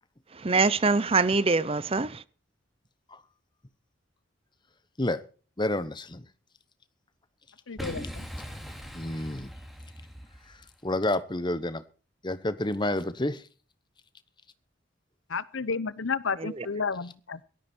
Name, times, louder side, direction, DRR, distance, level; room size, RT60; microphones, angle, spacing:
voice 1, 0.3-2.2 16.4-16.7, right 4 dB, 30° right, 0.6 m, -24 dB
voice 2, 5.6-6.2 8.9-9.5 10.8-11.8 12.2-13.4, left 1 dB, 20° left, 1.0 m, -29 dB
voice 3, 7.7-8.2 15.3-17.4, left 5 dB, 70° left, 0.8 m, -31 dB
Boom, 7.8-10.8, equal, ahead, 2.5 m, -40 dB
17.5 x 13.0 x 4.4 m
head